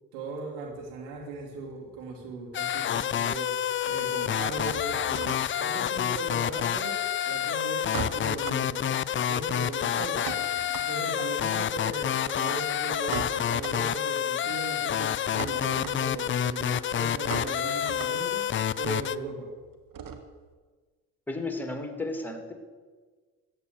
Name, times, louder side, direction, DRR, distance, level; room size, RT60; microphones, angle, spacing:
voice 1, 0.1-3.5 3.8-9.0 9.3-10.3 10.8-19.5, right 3 dB, 75° right, 0 dB, 2.8 m, -38 dB
sound 1, 0.7-2.3 2.5-3.3 3.5-20.5, right 6 dB, 45° right, 1.7 m, -42 dB
sound 2, 2.5-19.2, left 10 dB, 30° left, 0.4 m, -28 dB
voice 2, 21.3-22.5, left 2 dB, 5° left, 4 dB, 2.8 m, -33 dB
14.0 x 9.5 x 6.7 m, 1.4 s
hypercardioid pair, 50°, 45 cm